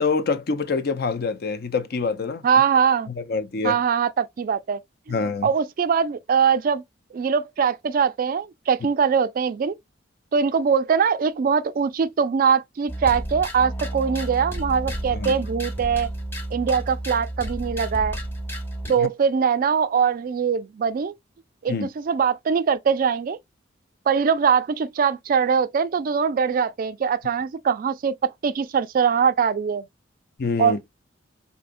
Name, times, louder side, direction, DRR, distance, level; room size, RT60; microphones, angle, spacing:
voice 1, 0.0-2.5 3.1-3.8 5.1-5.5 15.1-15.3 19.0-19.1 21.7-21.9 30.4-30.8, left 4 dB, 55° left, 0.5 m, -26 dB
voice 2, 2.4-3.1 3.6-4.8 5.1-5.2 5.4-6.8 7.1-9.8 10.3-16.1 16.5-18.2 18.9-21.1 21.6-23.4 24.1-28.1 28.4-29.8 30.6-30.9, right 6 dB, 45° right, 0.3 m, -22 dB
sound 1, 12.9-19.0, right 1 dB, 10° left, 0.7 m, -31 dB
4.8 x 2.7 x 2.5 m
head